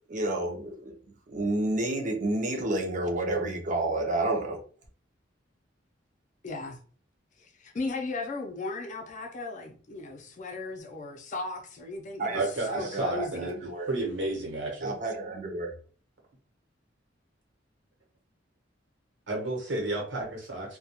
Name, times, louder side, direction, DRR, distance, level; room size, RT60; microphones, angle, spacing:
voice 1, 0.1-0.9 1.3-4.6 12.2-13.9 14.8-15.7, right 2 dB, 45° right, 0.6 m, -30 dB
voice 2, 6.4-6.8 7.4-13.5, left 3 dB, 40° left, 0.5 m, -36 dB
voice 3, 12.3-13.5 13.9-14.9 19.3-20.8, right 2 dB, 70° right, 1.0 m, -32 dB
2.3 x 2.2 x 2.8 m
head